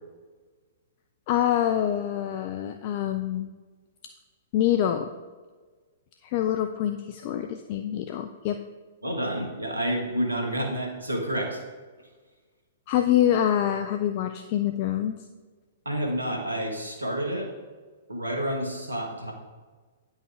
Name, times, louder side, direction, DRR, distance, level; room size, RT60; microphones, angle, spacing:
voice 1, 1.3-3.5 4.5-5.1 6.2-8.6 12.9-15.2, left 11 dB, 45° left, 6 dB, 0.4 m, -25 dB
voice 2, 9.0-11.6 15.8-17.5 18.1-19.3, right 1 dB, 85° right, 2 dB, 1.4 m, -29 dB
9.3 x 5.4 x 3.6 m, 1.4 s
figure-of-eight pair, 110°, 0 cm